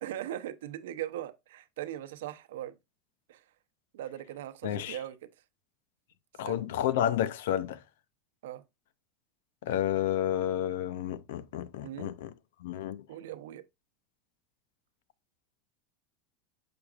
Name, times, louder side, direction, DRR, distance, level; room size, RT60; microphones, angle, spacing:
voice 1, 0.0-2.7 3.3-3.4 3.9-5.2 6.4-6.7 8.4-8.6 11.8-12.1 13.1-13.6, right 12 dB, 90° right, 0.6 m, -39 dB
voice 2, 4.6-5.0 6.4-7.8 9.6-12.3 12.6-13.0, left 11 dB, 85° left, 0.6 m, -30 dB
6.9 x 5.9 x 2.4 m
supercardioid pair, 140°, 0 cm